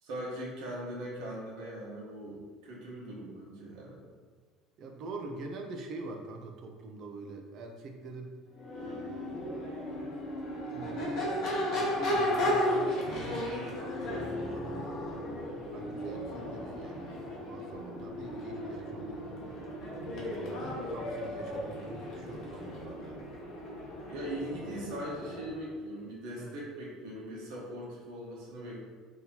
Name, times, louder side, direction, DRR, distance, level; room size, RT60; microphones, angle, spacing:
voice 1, 0.0-4.0 17.1-17.2 21.3-21.4 24.0-28.8, right 1 dB, 70° right, -4 dB, 1.1 m, -40 dB
voice 2, 4.8-8.3 8.8-9.5 10.7-11.3 11.7-15.2 15.7-19.7 20.1-23.3 26.4-26.5, right 2 dB, 35° right, 2 dB, 0.4 m, -44 dB
Crowd / Race car auto racing / Accelerating revving vroom, 8.5-25.6, left 1 dB, 45° left, 0.8 m, -35 dB
3.9 x 2.8 x 2.8 m, 1.5 s
cardioid pair, 180°, 0 cm